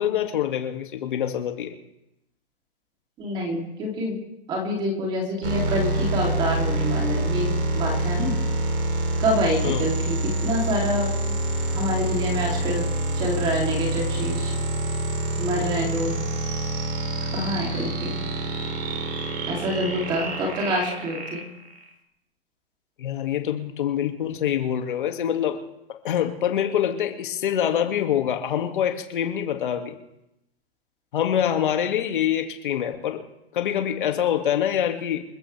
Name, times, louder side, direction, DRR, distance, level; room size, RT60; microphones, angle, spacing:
voice 1, 0.0-1.7 9.6-9.8 23.0-25.6 26.0-30.0 31.1-33.2 33.5-35.2, left 9 dB, 50° left, 4 dB, 2.3 m, -25 dB
voice 2, 3.2-4.2 4.5-8.4 9.2-11.1 11.7-12.9 13.2-14.5 15.4-16.2 17.3-18.2 19.5-21.4, equal, 15° right, -1 dB, 3.1 m, -27 dB
sound 1, 5.4-21.9, right 2 dB, 75° right, 3.9 m, -26 dB
28.0 x 14.5 x 3.5 m, 0.85 s
hypercardioid pair, 170°, 32 cm